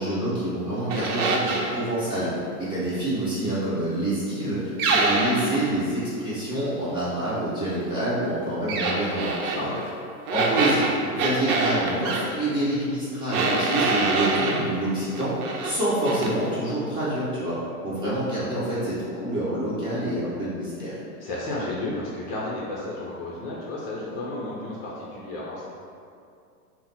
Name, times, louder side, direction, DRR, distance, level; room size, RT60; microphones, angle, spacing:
voice 1, 0.0-2.3 2.6-9.7 10.3-15.3 15.6-17.6 17.8-21.0, right 1 dB, 10° right, -11 dB, 1.1 m, -27 dB
sound 1, 0.9-1.8 4.8-5.6 8.7-9.6 10.3-12.2 13.3-14.6 15.1-15.8 16.0-16.3, right 3 dB, 65° right, 0.7 m, -25 dB
voice 2, 21.2-25.7, left 2 dB, 40° left, -6 dB, 0.8 m, -32 dB
3.8 x 2.1 x 4.2 m, 2.4 s
hypercardioid pair, 125°, 46 cm